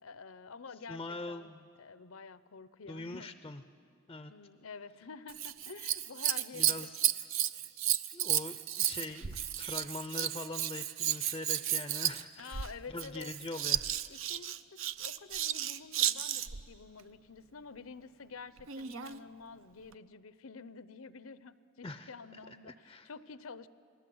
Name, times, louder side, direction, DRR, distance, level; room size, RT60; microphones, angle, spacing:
voice 1, 0.0-1.5 1.8-3.3 4.3-6.9 12.4-13.3 14.1-23.7, left 5 dB, 85° left, 15 dB, 0.7 m, -49 dB
voice 2, 0.9-1.7 2.9-3.6 4.1-4.3 6.5-7.0 8.1-12.6 12.9-13.9 21.8-22.1 22.7-23.1, left 2 dB, 20° left, 10 dB, 0.5 m, -42 dB
Scissors, 5.3-16.6 18.6-19.2 19.9-20.0, right 11 dB, 70° right, 0.6 m, -33 dB
29.5 x 20.0 x 7.9 m, 2.4 s
head